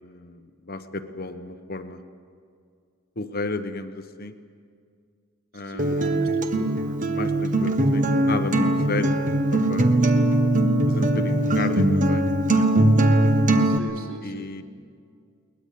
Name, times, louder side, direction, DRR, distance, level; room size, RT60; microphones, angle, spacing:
voice 1, 0.0-2.0 3.2-4.3 5.5-6.3 7.1-9.1 9.5-9.9 10.9-12.2 14.2-14.6, left 2 dB, 45° left, 8 dB, 1.2 m, -32 dB
voice 2, 5.5-7.0 13.5-14.5, right 1 dB, 80° right, 1 dB, 3.0 m, -40 dB
Acoustic guitar, 5.8-13.8, right 1 dB, 35° right, 1.2 m, -21 dB
21.5 x 20.0 x 8.5 m, 2.2 s
head